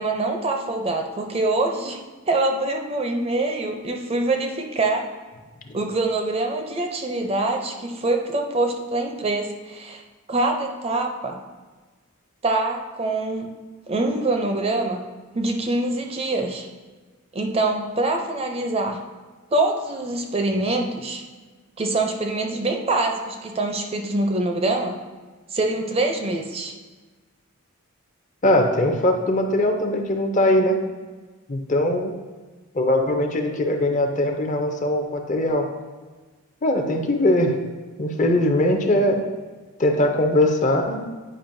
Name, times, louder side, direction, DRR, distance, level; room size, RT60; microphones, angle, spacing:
voice 1, 0.0-2.0 2.3-5.0 5.7-10.0 10.3-11.4 12.4-13.5 13.9-15.0 15.3-16.7 17.3-19.0 19.5-21.2 21.8-25.0 25.5-26.7, right 2 dB, 25° right, 3 dB, 0.5 m, -24 dB
voice 2, 28.4-30.8 31.5-32.1 32.7-35.7 36.6-37.6 38.0-39.3 39.8-41.1, left 1 dB, 35° left, 4 dB, 0.6 m, -21 dB
8.7 x 5.0 x 2.6 m, 1.3 s
head